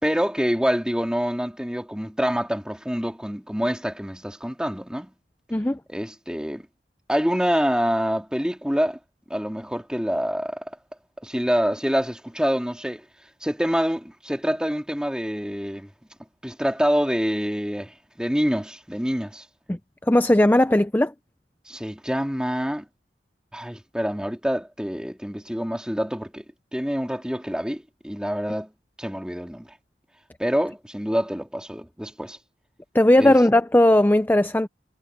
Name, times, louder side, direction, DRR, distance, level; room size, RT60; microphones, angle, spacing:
voice 1, 0.0-5.1 5.9-6.7 7.1-9.0 9.3-10.6 11.2-13.0 13.4-15.9 16.4-19.4 21.7-22.9 23.5-26.4 26.7-28.7 29.0-29.7 30.4-32.4 33.2-33.3, equal, 5° right, 3.0 m, -26 dB
voice 2, 20.1-21.1 32.9-34.7, left 1 dB, 10° left, 0.5 m, -17 dB
head